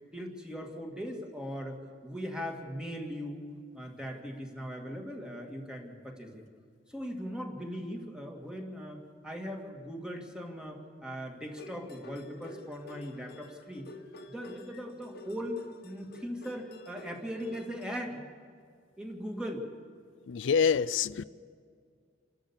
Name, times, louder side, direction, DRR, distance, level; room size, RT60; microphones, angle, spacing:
voice 1, 0.1-3.4 3.7-6.5 6.9-13.9 14.3-18.2 19.0-19.7, equal, 5° right, 2.2 m, -39 dB
sound 1, 11.5-17.9, left 2 dB, 55° left, 1.5 m, -49 dB
voice 2, 20.3-21.2, left 6 dB, 75° left, 0.4 m, -26 dB
28.5 x 13.0 x 7.3 m
head